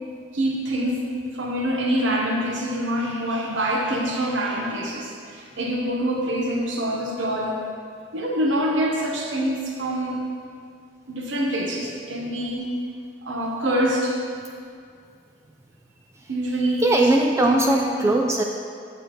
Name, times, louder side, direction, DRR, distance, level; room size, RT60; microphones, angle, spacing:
voice 1, 0.3-1.1 1.3-7.6 8.1-10.2 11.1-12.7 13.2-14.2 16.3-16.8 17.5-18.0, right 1 dB, 70° right, -1 dB, 0.9 m, -25 dB
voice 2, 16.8-18.4, right 2 dB, 15° right, 1 dB, 0.3 m, -19 dB
9.1 x 7.2 x 3.0 m, 2.3 s
head